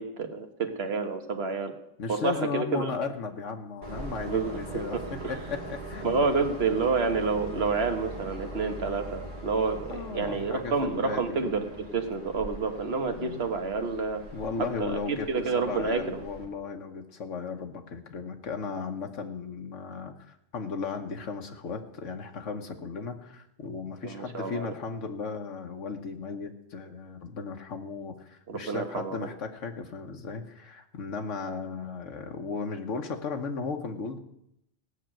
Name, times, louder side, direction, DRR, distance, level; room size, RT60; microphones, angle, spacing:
voice 1, 0.0-1.7 2.1-3.0 4.3-5.3 6.0-14.2 14.6-16.2 24.0-24.7 28.5-29.2, right 4 dB, 55° right, 6 dB, 1.5 m, -29 dB
voice 2, 2.0-5.0 5.3-6.3 9.9-11.2 13.2-13.4 14.3-34.2, left 4 dB, 90° left, 4 dB, 1.4 m, -36 dB
Train, 3.8-16.5, right 1 dB, 40° right, 2.6 m, -42 dB
16.5 x 6.1 x 8.9 m, 0.80 s
omnidirectional pair, 1.2 m